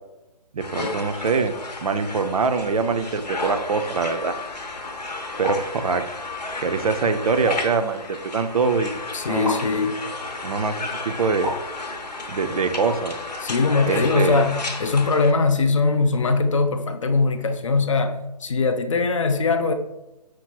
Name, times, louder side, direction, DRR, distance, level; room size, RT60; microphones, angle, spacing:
voice 1, 0.5-1.5 1.8-4.3 5.4-6.0 6.6-8.9 9.3-9.6 10.4-11.5 12.3-13.2 13.9-14.4, right 5 dB, 60° right, 8 dB, 0.4 m, -23 dB
sound 1, 0.6-15.3, left 3 dB, 80° left, 0.8 m, -33 dB
sound 2, 5.4-5.7 7.5-7.8 9.4-9.7 11.4-11.7, left 2 dB, 5° left, 0.9 m, -29 dB
voice 2, 9.1-10.0 13.4-19.7, left 4 dB, 50° left, 7 dB, 0.4 m, -21 dB
6.0 x 2.8 x 2.2 m, 0.97 s
hypercardioid pair, 165°, 21 cm